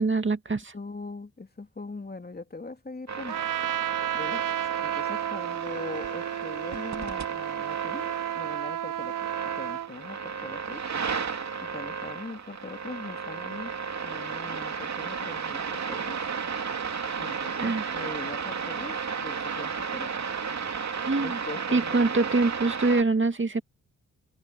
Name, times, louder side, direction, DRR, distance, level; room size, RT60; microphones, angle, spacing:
voice 1, 0.0-0.7 17.6-17.8 21.1-21.4 21.7-23.6, right 3 dB, 35° right, 2.3 m, -24 dB
voice 2, 0.7-3.5 3.9-4.6 4.8-10.9 11.6-13.7 14.0-16.2 17.2-20.4 21.2-22.0, left 3 dB, 30° left, 3.3 m, -41 dB
sound 1, 3.1-23.0, right 6 dB, 55° right, 2.7 m, -34 dB
Trumpet, 3.3-9.9, right 12 dB, 75° right, 0.7 m, -32 dB
supercardioid pair, 50°, 33 cm